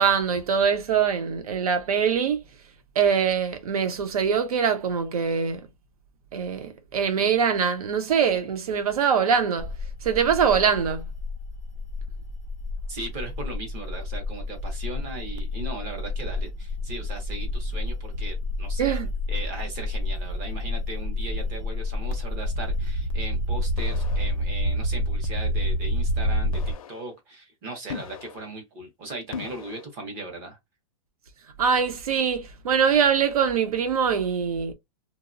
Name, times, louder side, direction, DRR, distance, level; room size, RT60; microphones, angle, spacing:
voice 1, 0.0-2.4 3.0-5.6 6.3-9.7 10.0-11.0 18.8-19.1 31.6-34.7, right 7 dB, 85° right, 0.8 m, -23 dB
sound 1, 9.6-26.7, left 1 dB, 55° right, 0.6 m, -29 dB
voice 2, 12.9-19.0 19.3-26.6 26.9-30.6, right 2 dB, 15° right, 0.5 m, -38 dB
sound 2, 23.8-24.3 25.2-25.6 26.5-27.0 27.9-28.4 29.3-29.9, left 5 dB, 75° left, 0.5 m, -37 dB
3.0 x 2.0 x 2.4 m
supercardioid pair, 180°, 18 cm